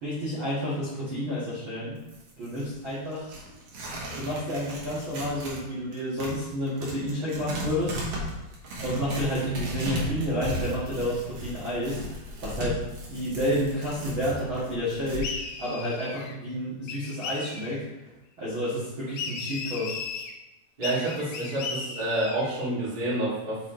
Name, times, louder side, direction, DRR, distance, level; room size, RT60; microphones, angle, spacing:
voice 1, 0.0-1.9 2.4-3.2 4.1-8.3 8.8-12.0 12.4-12.8 13.1-15.3 15.6-17.8 18.4-20.0, equal, 50° right, -10 dB, 1.6 m, -30 dB
Tearing, 2.0-5.6 5.9-15.2, equal, 70° right, 1.5 m, -36 dB
sound 1, 15.2-16.4 16.9-17.8 19.2-20.3 20.8-22.5, left 4 dB, 90° left, 2.0 m, -36 dB
voice 2, 20.8-23.6, right 1 dB, 20° right, -9 dB, 1.3 m, -28 dB
7.0 x 4.3 x 3.9 m, 0.97 s
omnidirectional pair, 5.0 m